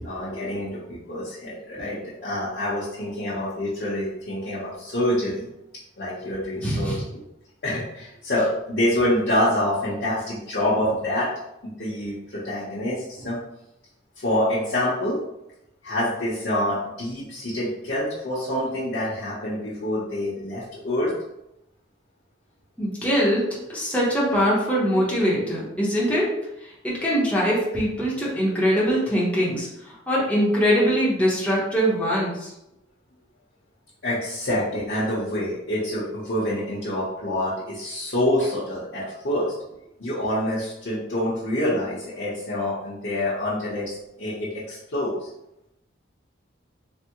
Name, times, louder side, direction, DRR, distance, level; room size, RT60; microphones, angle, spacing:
voice 1, 0.0-5.5 6.0-7.2 7.6-11.3 11.6-13.4 14.2-15.2 15.8-21.1 34.0-39.5 40.0-45.3, left 1 dB, 60° left, -10 dB, 0.7 m, -26 dB
voice 2, 6.6-7.0 22.8-26.3 26.6-32.5, equal, 5° left, -7 dB, 0.7 m, -22 dB
3.4 x 2.0 x 2.8 m, 0.86 s
head